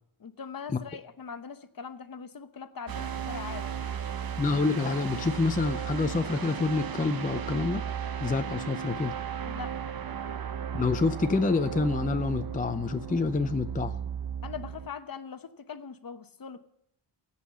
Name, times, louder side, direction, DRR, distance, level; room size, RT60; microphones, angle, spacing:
voice 1, 0.2-3.7 9.4-9.8 14.4-16.6, left 6 dB, 45° left, 11 dB, 1.0 m, -41 dB
sound 1, 2.9-14.9, right 8 dB, 45° right, 0.9 m, -35 dB
voice 2, 4.4-7.8 8.2-9.1 10.7-14.0, left 3 dB, 15° left, 9 dB, 0.5 m, -27 dB
16.5 x 5.7 x 8.4 m, 0.77 s
wide cardioid pair, 100°, 49 cm